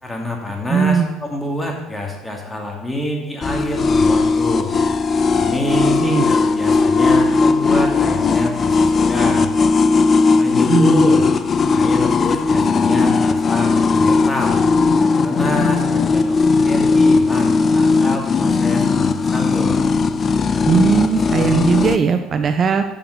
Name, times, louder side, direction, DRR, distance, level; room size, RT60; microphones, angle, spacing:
voice 1, 0.0-4.7 5.3-9.5 10.4-11.3 11.7-14.6 15.2-19.8, left 1 dB, 10° left, 0 dB, 2.2 m, -26 dB
voice 2, 0.7-1.1 6.0-6.2 10.7-11.0 20.7-22.8, right 6 dB, 45° right, 8 dB, 0.5 m, -17 dB
sound 1, 3.4-22.0, left 4 dB, 40° left, 0.4 m, -17 dB
7.0 x 5.9 x 5.5 m, 1.0 s
hypercardioid pair, 65°, 0 cm